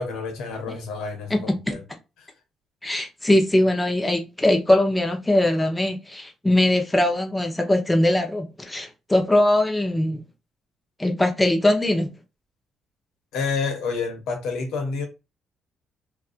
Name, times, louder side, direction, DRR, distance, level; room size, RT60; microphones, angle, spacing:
voice 1, 0.0-1.8 13.3-15.1, left 4 dB, 90° left, 0.8 m, -29 dB
voice 2, 1.3-1.8 2.8-10.2 11.0-12.1, left 1 dB, 10° left, 0.6 m, -21 dB
2.5 x 2.3 x 2.4 m
cardioid pair, 90°, 0 cm